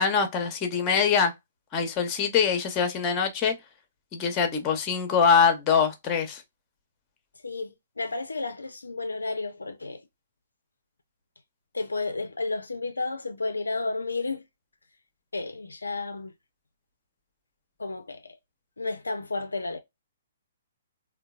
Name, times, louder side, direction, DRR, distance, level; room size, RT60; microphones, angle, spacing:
voice 1, 0.0-1.3 1.7-3.5 4.1-6.4, left 6 dB, 25° left, 0.8 m, -23 dB
voice 2, 7.4-10.0 11.7-14.4 15.3-16.3 17.8-18.4 18.8-19.8, left 3 dB, 80° left, 0.4 m, -32 dB
3.7 x 2.2 x 2.3 m
figure-of-eight pair, 125°, 0 cm